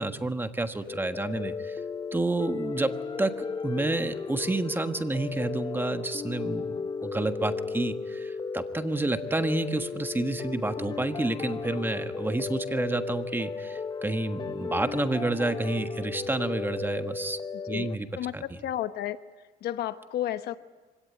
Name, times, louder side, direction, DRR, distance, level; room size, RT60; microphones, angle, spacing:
voice 1, 0.0-1.8 2.1-6.7 7.0-17.4 17.7-18.1 18.3-18.4, right 2 dB, 10° right, 8 dB, 1.4 m, -29 dB
sound 1, 0.8-18.0, left 5 dB, 25° left, 0.8 m, -35 dB
voice 2, 18.2-19.2 19.6-20.6, left 12 dB, 70° left, 11 dB, 1.1 m, -32 dB
25.0 x 17.0 x 9.7 m, 1.3 s
cardioid pair, 110°, 17 cm